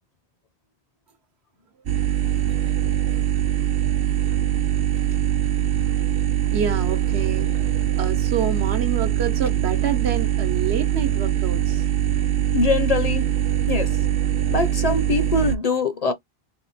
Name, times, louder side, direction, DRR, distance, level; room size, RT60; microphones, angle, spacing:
sound 1, 1.9-15.6, right 11 dB, 65° right, 0.8 m, -22 dB
voice 1, 6.5-11.9, right 7 dB, 90° right, 1.1 m, -28 dB
voice 2, 12.5-13.2 13.7-13.9 14.5-16.1, left 3 dB, 50° left, 0.5 m, -22 dB
3.7 x 2.1 x 3.9 m
omnidirectional pair, 1.1 m